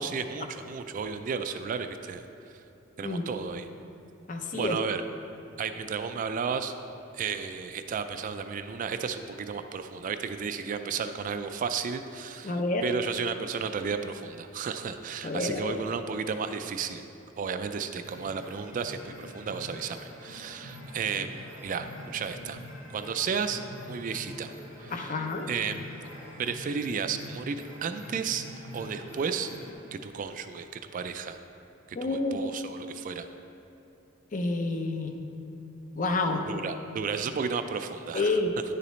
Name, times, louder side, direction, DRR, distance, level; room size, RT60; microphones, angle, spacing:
voice 1, 0.0-2.3 3.0-3.7 4.5-5.0 5.6-6.7 7.1-17.0 17.4-22.6 22.9-23.6 23.9-24.5 24.8-25.2 25.5-25.8 26.4-28.4 28.7-29.5 29.9-31.4 31.9-33.3 36.5-38.4, right 6 dB, 40° right, 9 dB, 0.3 m, -33 dB
voice 2, 4.3-4.8 12.4-12.9 15.2-15.8 24.9-25.5 31.9-32.4 34.3-35.1 35.9-36.4 38.1-38.5, left 2 dB, 40° left, 5 dB, 0.6 m, -29 dB
sound 1, 18.0-29.7, left 1 dB, 80° left, 1.7 m, -45 dB
9.6 x 6.8 x 3.1 m, 3.0 s
head